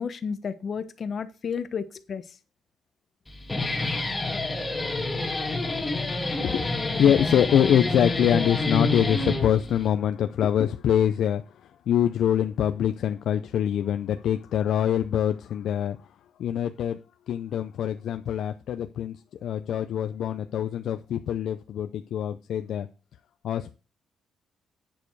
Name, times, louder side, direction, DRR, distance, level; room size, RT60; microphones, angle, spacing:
voice 1, 0.0-2.2, left 6 dB, 50° left, 11 dB, 1.1 m, -32 dB
Guitar, 3.3-9.9, left 2 dB, 15° left, 2.1 m, -28 dB
voice 2, 6.1-16.0 16.4-17.0 17.3-19.2 19.4-22.9 23.4-23.7, left 10 dB, 70° left, 8 dB, 0.6 m, -25 dB
9.2 x 7.0 x 4.7 m, 0.32 s
cardioid pair, 90°, 0 cm